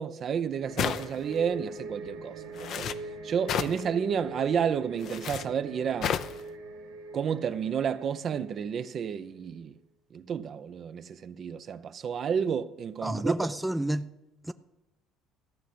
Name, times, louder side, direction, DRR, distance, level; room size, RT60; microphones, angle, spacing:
voice 1, 0.0-2.9 3.2-6.1 7.1-9.7 10.1-13.3, right 7 dB, 50° right, 0.7 m, -31 dB
sound 1, 0.6-9.0 9.3-9.5, right 3 dB, 80° right, 1.4 m, -43 dB
sound 2, 0.8-1.3 2.5-3.0 3.5-3.8 5.0-5.5 6.0-6.4, left 9 dB, 55° left, 0.7 m, -31 dB
voice 2, 13.0-14.0 14.5-14.6, right 1 dB, 5° right, 0.5 m, -29 dB
14.0 x 6.2 x 8.5 m
supercardioid pair, 90°, 0 cm